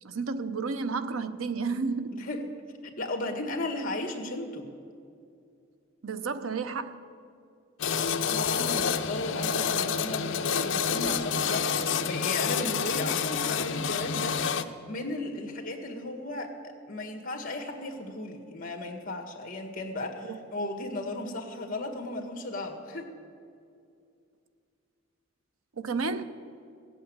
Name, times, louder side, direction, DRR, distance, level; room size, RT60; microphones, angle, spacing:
voice 1, 0.0-2.2 6.0-7.1 20.3-20.4 25.8-26.2, right 4 dB, 90° right, 11 dB, 0.7 m, -31 dB
voice 2, 2.1-2.4 2.8-4.7 8.2-23.1, left 2 dB, 40° left, 3 dB, 1.8 m, -35 dB
sound 1, 7.8-14.6, left 6 dB, 65° left, 0.6 m, -28 dB
16.0 x 8.3 x 8.8 m, 2.4 s
head